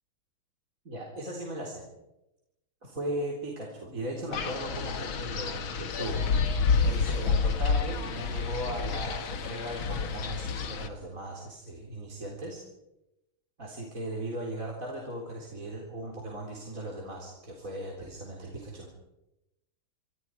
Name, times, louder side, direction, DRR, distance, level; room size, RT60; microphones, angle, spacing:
voice 1, 0.8-1.8 2.8-6.2 6.8-12.6 13.6-18.9, right 1 dB, 40° right, -1 dB, 4.2 m, -37 dB
Wind, 4.3-10.9, left 5 dB, 70° left, 2.3 m, -29 dB
27.5 x 25.0 x 4.8 m, 0.93 s
omnidirectional pair, 2.3 m